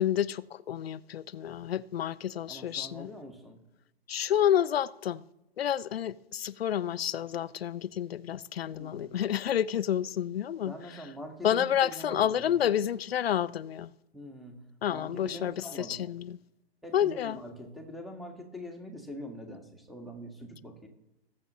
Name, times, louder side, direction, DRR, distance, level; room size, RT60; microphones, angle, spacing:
voice 1, 0.0-3.1 4.1-5.2 5.6-11.0 11.4-13.9 14.8-16.4 16.9-17.4, left 10 dB, 70° left, 0.6 m, -29 dB
voice 2, 2.5-3.6 8.7-9.2 10.6-12.8 14.1-14.6 14.9-16.1 16.8-20.9, equal, ahead, 1.7 m, -44 dB
20.5 x 7.4 x 3.1 m
hypercardioid pair, 120°, 32 cm